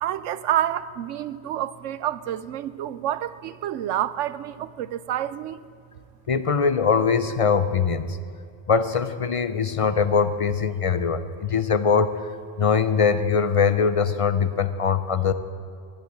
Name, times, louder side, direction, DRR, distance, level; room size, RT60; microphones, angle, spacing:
voice 1, 0.0-5.6, right 11 dB, 80° right, 0.9 m, -28 dB
voice 2, 6.3-8.2 8.7-12.2 12.6-15.3, left 6 dB, 50° left, 0.4 m, -22 dB
11.5 x 11.5 x 8.8 m
omnidirectional pair, 1.3 m